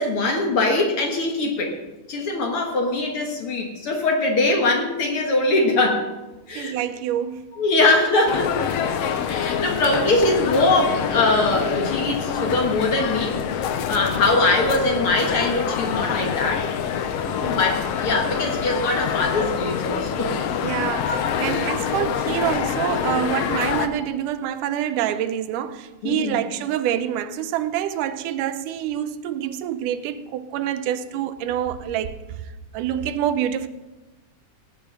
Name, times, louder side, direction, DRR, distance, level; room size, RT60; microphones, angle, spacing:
voice 1, 0.0-1.8 2.1-6.1 6.5-6.8 7.5-8.7 9.3-16.7 17.4-20.4 21.0-21.3 26.0-26.4, left 2 dB, 50° left, 2.1 m, -22 dB
voice 2, 6.6-7.5 17.3-17.6 20.6-32.2 32.7-33.7, right 10 dB, 90° right, 2.3 m, -26 dB
sound 1, 8.3-23.9, left 8 dB, 70° left, 1.6 m, -26 dB
17.5 x 6.1 x 6.4 m
omnidirectional pair, 3.6 m